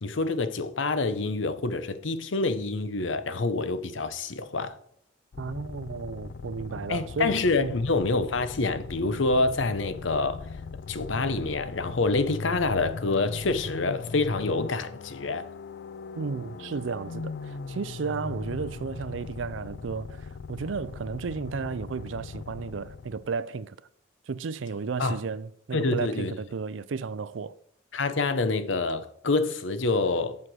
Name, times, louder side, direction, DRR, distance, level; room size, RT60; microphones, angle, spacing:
voice 1, 0.0-4.8 6.9-10.5 10.9-15.5 25.0-25.2 25.7-26.3 27.9-30.4, left 3 dB, 85° left, 0.8 m, -27 dB
sound 1, 5.3-23.4, left 4 dB, 60° left, 0.4 m, -39 dB
voice 2, 5.4-7.8 16.2-23.8 24.3-27.5, right 5 dB, 90° right, 0.5 m, -33 dB
7.4 x 5.9 x 6.3 m
head